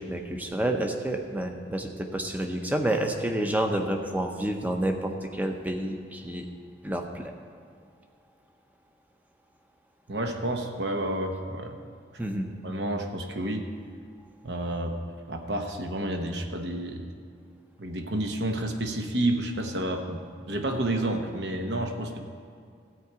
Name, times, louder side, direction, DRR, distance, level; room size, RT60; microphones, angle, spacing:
voice 1, 0.0-6.5 6.8-7.3 12.2-12.5, right 1 dB, 10° right, 4 dB, 0.7 m, -29 dB
voice 2, 10.1-11.7 12.6-13.7 14.4-15.0 15.3-17.1 17.8-22.2, right 1 dB, 60° right, 4 dB, 1.0 m, -30 dB
13.5 x 4.8 x 8.0 m, 2.3 s
head